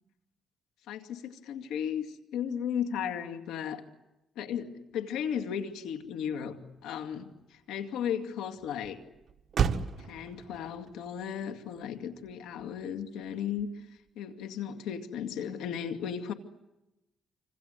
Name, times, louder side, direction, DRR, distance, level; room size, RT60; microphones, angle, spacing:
voice 1, 0.9-2.1 2.3-3.8 4.4-9.0 10.0-13.7 14.2-16.3, left 8 dB, 90° left, 6 dB, 2.3 m, -35 dB
Motor vehicle (road), 5.4-14.1, right 7 dB, 50° right, 1.8 m, -38 dB
28.0 x 26.0 x 8.1 m, 0.93 s
cardioid pair, 90°, 0 cm